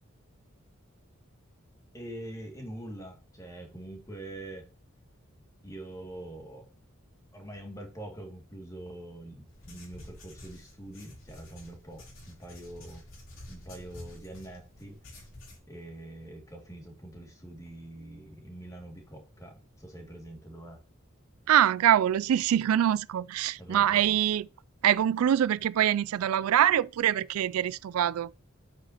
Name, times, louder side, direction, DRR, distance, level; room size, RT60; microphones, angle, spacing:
voice 1, 1.9-4.7 5.6-6.7 7.3-13.0 13.5-15.0 15.7-20.8 23.6-24.2, right 1 dB, 15° left, 2.4 m, -44 dB
sound 1, 9.5-15.6, left 1 dB, 65° left, 4.7 m, -49 dB
voice 2, 21.5-24.5 24.8-28.3, right 10 dB, 90° right, 0.3 m, -24 dB
9.0 x 7.5 x 3.0 m
head